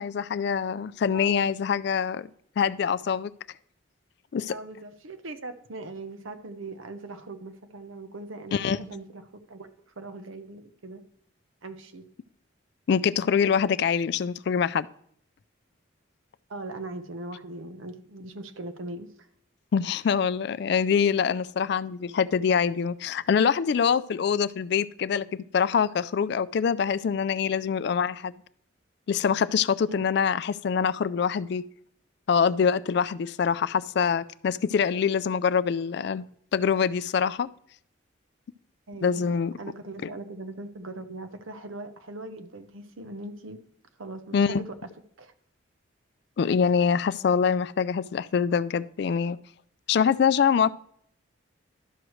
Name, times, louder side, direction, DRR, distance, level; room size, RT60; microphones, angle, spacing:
voice 1, 0.0-2.3 2.6-3.3 4.3-4.6 8.5-8.8 12.9-14.9 19.7-28.3 29.1-31.6 32.3-36.3 36.5-37.5 39.0-39.5 40.0-40.1 44.3-44.6 46.4-49.4 49.9-50.7, left 6 dB, 55° left, 16 dB, 0.3 m, -24 dB
voice 2, 1.1-1.5 4.5-9.2 9.5-9.7 10.0-11.0 11.6-12.0 16.5-19.3 29.9-30.0 38.9-39.3 39.6-43.6 44.0-44.6 45.2-45.3, right 2 dB, 85° right, 9 dB, 0.8 m, -40 dB
12.0 x 6.3 x 3.1 m, 0.66 s
head